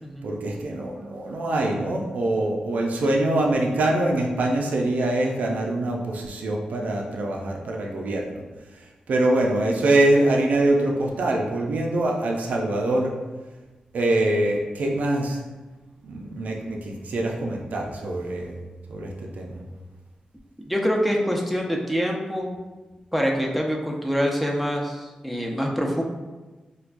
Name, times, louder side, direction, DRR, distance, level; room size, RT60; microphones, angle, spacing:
voice 1, 0.2-8.4 8.7-13.2 13.9-15.4 16.0-18.6 18.9-19.6, right 1 dB, 80° right, 0 dB, 0.4 m, -24 dB
voice 2, 20.6-22.5 23.1-26.0, equal, ahead, -1 dB, 0.6 m, -25 dB
4.4 x 2.2 x 2.5 m, 1.2 s
cardioid pair, 55°, 3 cm